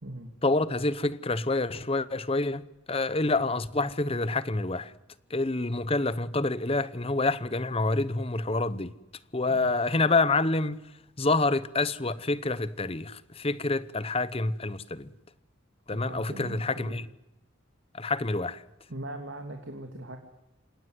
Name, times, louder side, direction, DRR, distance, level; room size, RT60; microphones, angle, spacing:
voice 1, 0.4-2.6 2.9-4.9 5.3-8.9 9.3-10.8 11.2-15.1 15.9-17.1 17.9-18.6, left 2 dB, 25° left, 0.8 m, -27 dB
voice 2, 9.5-10.0 15.9-16.9 18.9-20.2, right 1 dB, 60° right, 2.6 m, -40 dB
28.5 x 18.0 x 7.9 m
head